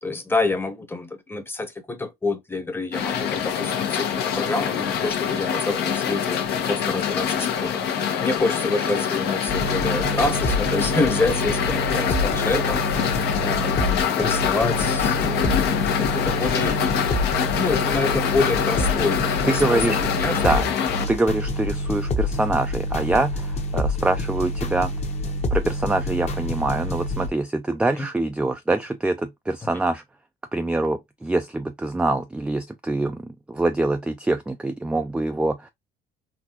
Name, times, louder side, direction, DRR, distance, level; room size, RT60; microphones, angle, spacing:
voice 1, 0.0-6.4 6.7-7.8 8.2-12.8 13.4-15.6 16.0-16.9 17.5-20.4 28.0-28.1, left 3 dB, 15° left, 0.9 m, -27 dB
sound 1, 2.9-21.0, left 8 dB, 75° left, 0.9 m, -25 dB
sound 2, 9.5-27.3, left 1 dB, 40° left, 0.9 m, -27 dB
voice 2, 19.4-20.0 20.4-20.6 21.1-24.9 25.5-30.0 30.5-35.7, right 2 dB, 5° right, 0.3 m, -24 dB
4.0 x 2.3 x 2.8 m
cardioid pair, 110°, 17 cm